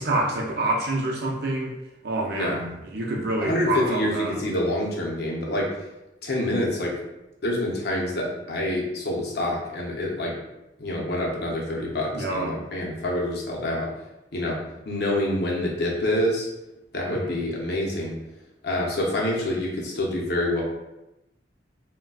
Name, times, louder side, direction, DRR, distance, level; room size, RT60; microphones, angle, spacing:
voice 1, 0.0-1.7 2.0-4.4 12.1-12.6 17.1-17.4, right 2 dB, 60° right, 0 dB, 0.5 m, -27 dB
voice 2, 2.3-2.6 3.4-5.7 6.2-6.9 7.4-10.3 10.8-13.9 14.3-14.6 14.9-16.5 16.9-18.1 18.6-20.6, left 1 dB, 60° left, -2 dB, 0.7 m, -26 dB
3.8 x 2.1 x 2.3 m, 0.93 s
head